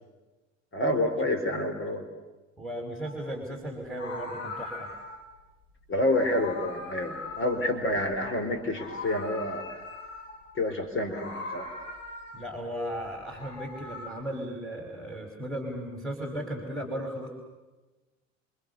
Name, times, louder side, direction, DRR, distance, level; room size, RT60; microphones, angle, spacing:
voice 1, 0.7-2.1 5.9-9.8 10.6-11.7, left 1 dB, 35° left, 6 dB, 4.5 m, -28 dB
voice 2, 2.6-4.9 12.3-17.3, right 1 dB, ahead, 1 dB, 5.3 m, -36 dB
Meow, 3.0-3.3 3.8-5.3 6.0-8.3 8.6-10.5 11.0-12.6 13.1-14.1, left 3 dB, 80° left, 6.7 m, -40 dB
28.5 x 28.0 x 6.9 m, 1.2 s
figure-of-eight pair, 65°, 38 cm